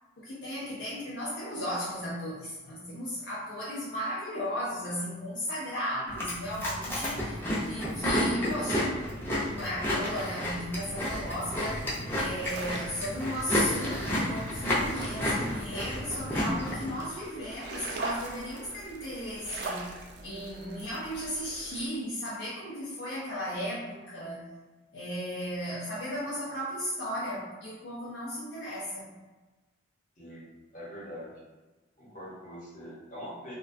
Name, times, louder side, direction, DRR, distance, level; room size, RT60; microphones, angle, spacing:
voice 1, 0.2-9.0 9.5-19.9 20.2-24.5 24.9-29.1, equal, 70° left, -6 dB, 0.4 m, -35 dB
Chewing mastication, 6.1-16.9, left 1 dB, 10° left, 0.4 m, -31 dB
sound 1, 11.5-21.9, right 2 dB, 60° right, 0.3 m, -43 dB
voice 2, 30.2-31.3 32.0-33.5, equal, 40° left, -8 dB, 0.9 m, -43 dB
2.2 x 2.2 x 2.5 m, 1.2 s
head